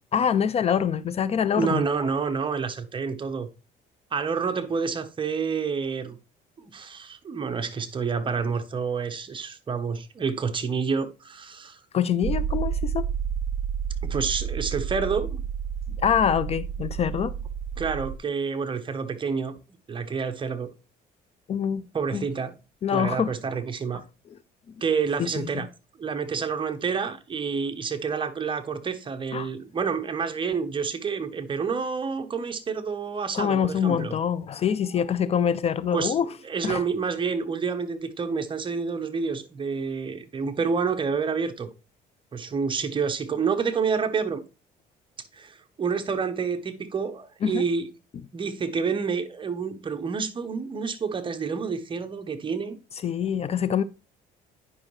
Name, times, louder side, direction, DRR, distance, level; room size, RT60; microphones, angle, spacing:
voice 1, 0.1-1.8 11.9-13.1 16.0-17.3 21.5-21.8 22.1-22.2 22.8-23.3 25.2-25.7 29.3-29.5 33.3-36.3 36.6-36.8 47.4-47.7 53.0-53.8, left 8 dB, 40° left, 0.4 m, -25 dB
voice 2, 1.5-3.5 4.1-6.2 6.6-11.8 14.0-15.4 17.8-19.6 19.9-20.7 21.9-22.5 22.9-24.0 24.8-25.7 26.0-34.2 35.9-36.1 36.4-41.7 42.3-44.4 45.3-47.9 48.3-52.8, right 5 dB, 30° right, 0.9 m, -28 dB
sound 1, 12.2-18.2, right 7 dB, 45° right, 0.5 m, -30 dB
9.7 x 5.4 x 3.1 m
cardioid pair, 110°, 17 cm